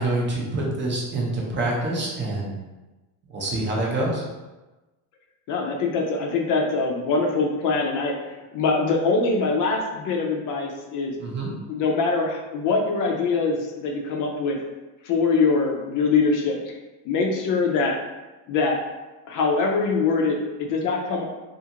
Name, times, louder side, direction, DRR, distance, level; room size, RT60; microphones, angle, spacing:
voice 1, 0.0-2.5 3.3-4.2 11.2-11.5, right 2 dB, 25° right, -3 dB, 0.5 m, -26 dB
voice 2, 5.5-8.1 8.5-11.1 11.7-14.6 15.0-16.7 17.1-17.9 18.5-18.8 19.3-21.2, left 4 dB, 50° left, 1 dB, 0.4 m, -23 dB
2.5 x 2.4 x 2.8 m, 1.1 s
cardioid pair, 140°, 42 cm